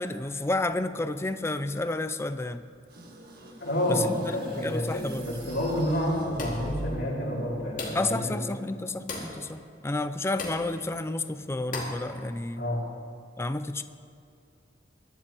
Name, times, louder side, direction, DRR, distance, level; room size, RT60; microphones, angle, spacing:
voice 1, 0.0-2.6 3.9-5.2 7.9-12.6 13.4-13.8, left 2 dB, 15° left, 11 dB, 0.4 m, -31 dB
sound 1, 2.9-7.2, equal, 55° right, 1.7 m, -42 dB
voice 2, 3.6-8.4 12.6-12.8, equal, 80° left, -9 dB, 3.3 m, -29 dB
sound 2, 6.4-6.7 7.8-8.1 9.1-9.4 10.4-10.7 11.7-12.0, left 3 dB, 50° left, 2.2 m, -36 dB
23.0 x 12.0 x 3.0 m, 2.4 s
head